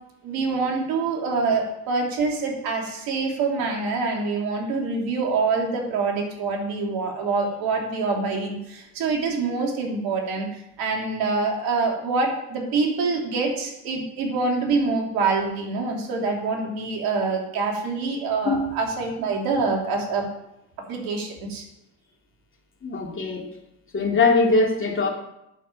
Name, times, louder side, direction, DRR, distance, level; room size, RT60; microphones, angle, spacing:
voice 1, 0.2-10.5 10.8-20.3 20.9-21.6, right 4 dB, 75° right, 0 dB, 3.3 m, -25 dB
voice 2, 22.8-23.5 23.9-25.1, left 3 dB, 35° left, 1 dB, 2.8 m, -21 dB
9.0 x 7.3 x 7.6 m, 0.85 s
supercardioid pair, 80°, 37 cm